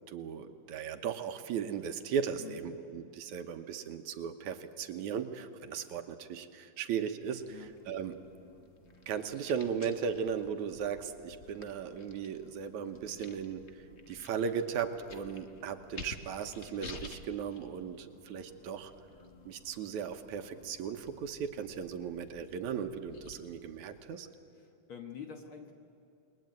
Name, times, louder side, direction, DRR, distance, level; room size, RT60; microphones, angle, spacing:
voice 1, 0.1-7.6 7.9-8.1 9.1-18.9 19.5-24.3, right 7 dB, 70° right, 7 dB, 2.5 m, -37 dB
sound 1, 7.2-24.1, left 3 dB, 85° left, 0.6 m, -53 dB
sound 2, 7.8-10.1 10.4-12.4 12.8-14.2 15.1-20.7 21.0-21.2, left 2 dB, 5° left, 7.7 m, -63 dB
voice 2, 24.5-25.7, left 7 dB, 50° left, 5 dB, 1.8 m, -46 dB
29.0 x 21.0 x 9.3 m, 2.8 s
omnidirectional pair, 3.6 m